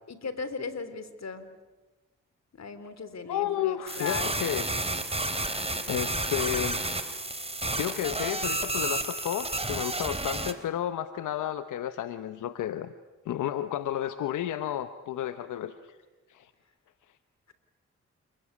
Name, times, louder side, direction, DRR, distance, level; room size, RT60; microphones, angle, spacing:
voice 1, 0.1-1.5 2.6-4.5, left 4 dB, 60° left, 11 dB, 3.6 m, -37 dB
voice 2, 3.3-4.7 5.9-6.8 7.8-12.9 13.2-16.0 16.3-16.5, left 11 dB, 85° left, 11 dB, 0.9 m, -32 dB
sound 1, 3.9-10.5, right 2 dB, 20° right, 3.6 m, -31 dB
29.5 x 20.5 x 9.9 m, 1.2 s
supercardioid pair, 40°, 30 cm